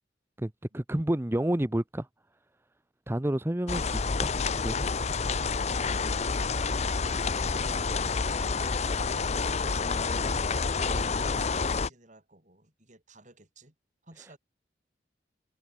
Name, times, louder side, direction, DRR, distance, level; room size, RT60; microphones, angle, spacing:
voice 1, 0.4-2.1 3.1-4.3 4.6-4.9, right 1 dB, 15° right, 0.7 m, -29 dB
sound 1, 3.7-11.9, left 4 dB, 35° left, 0.7 m, -28 dB
voice 2, 6.0-8.0 9.2-13.7 14.0-14.4, right 2 dB, 40° right, 6.9 m, -52 dB
head